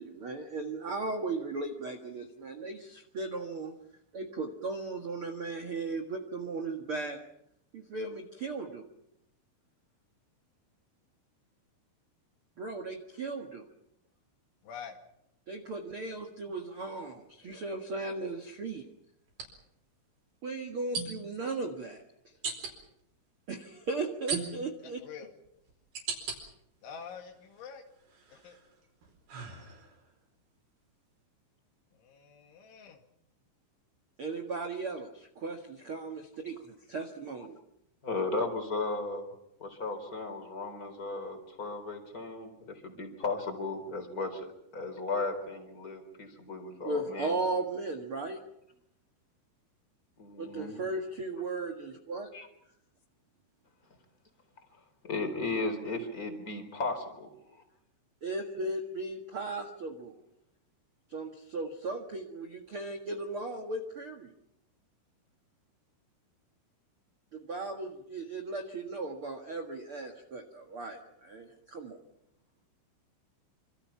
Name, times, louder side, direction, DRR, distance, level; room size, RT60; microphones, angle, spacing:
voice 1, 0.0-3.7 4.1-7.2 7.7-8.8 12.6-13.6 15.5-18.8 20.4-22.0 23.5-25.0 34.2-37.6 46.8-48.4 50.4-52.3 58.2-60.2 61.1-64.3 67.3-72.0, right 3 dB, 85° right, 4 dB, 1.2 m, -36 dB
voice 2, 14.6-15.0 25.0-25.3 26.8-27.8 28.3-28.6 31.9-33.0, left 7 dB, 80° left, 4 dB, 4.6 m, -46 dB
sound 1, 16.5-16.7 19.3-19.5 20.9-21.4 22.4-22.7 24.3-24.8 25.4-26.4 26.9-27.6 28.1-30.1, right 5 dB, 55° right, 6.3 m, -38 dB
voice 3, 38.0-39.2 39.6-44.5 44.7-47.4 50.2-50.8 52.3-52.5 55.0-57.6, left 3 dB, 20° left, 6 dB, 3.9 m, -35 dB
26.5 x 26.5 x 5.8 m, 0.77 s
omnidirectional pair, 5.4 m